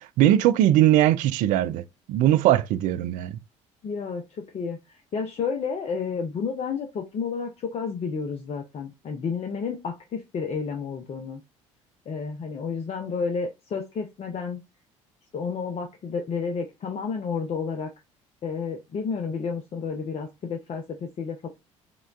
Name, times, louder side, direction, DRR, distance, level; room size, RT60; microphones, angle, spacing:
voice 1, 0.0-3.3, right 13 dB, 55° right, 0.4 m, -20 dB
voice 2, 3.8-11.4 12.1-14.6 15.3-17.9 18.4-21.5, left 5 dB, 40° left, 0.7 m, -31 dB
5.0 x 2.2 x 2.3 m
figure-of-eight pair, 55°, 16 cm